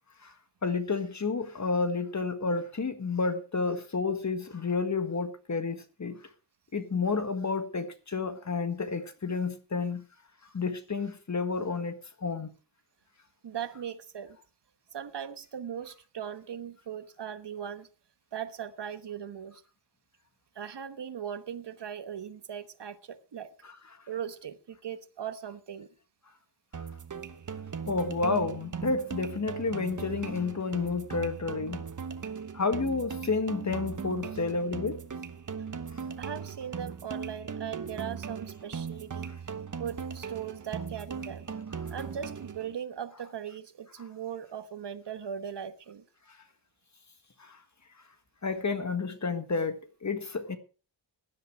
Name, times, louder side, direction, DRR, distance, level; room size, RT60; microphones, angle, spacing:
voice 1, 0.6-6.2 6.7-10.0 10.5-12.5 23.6-23.7 27.9-31.8 32.5-35.0 47.4-47.6 48.4-50.6, left 4 dB, 40° left, 1.6 m, -30 dB
voice 2, 13.4-14.4 14.9-17.9 18.3-19.6 20.5-23.5 24.1-25.9 36.2-39.3 39.8-41.5 41.9-46.0, right 8 dB, 65° right, 1.2 m, -39 dB
sound 1, 26.7-42.7, right 6 dB, 45° right, 1.1 m, -39 dB
16.5 x 10.5 x 4.7 m
wide cardioid pair, 135°, 44 cm